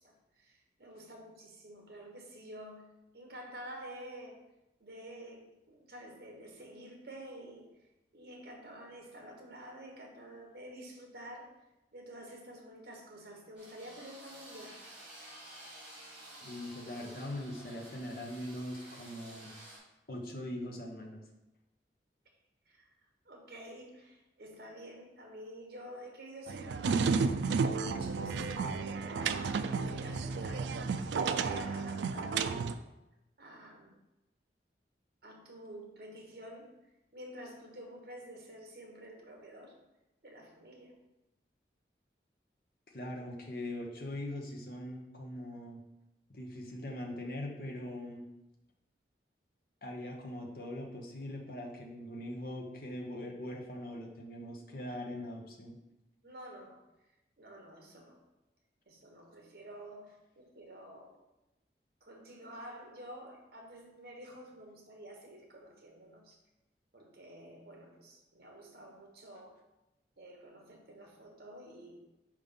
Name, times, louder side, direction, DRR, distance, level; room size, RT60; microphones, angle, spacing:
voice 1, 0.0-2.9 3.1-4.4 4.8-7.7 8.1-11.5 11.9-14.7 22.7-22.9 23.2-32.7 33.4-34.0 35.2-36.7 37.1-39.7 40.2-40.9 56.2-56.8 57.4-58.2 58.9-61.2 62.0-66.4 66.9-69.5 70.2-72.0, equal, 60° right, 1 dB, 1.3 m, -49 dB
sound 1, 13.5-19.8, right 1 dB, 5° right, 1.9 m, -52 dB
voice 2, 16.4-19.5 20.1-21.2 42.9-45.8 46.3-48.2 49.8-55.8, left 1 dB, 55° left, 0 dB, 1.0 m, -41 dB
sound 2, 26.5-32.7, right 5 dB, 85° right, 0.3 m, -32 dB
4.9 x 3.7 x 5.5 m, 0.96 s
head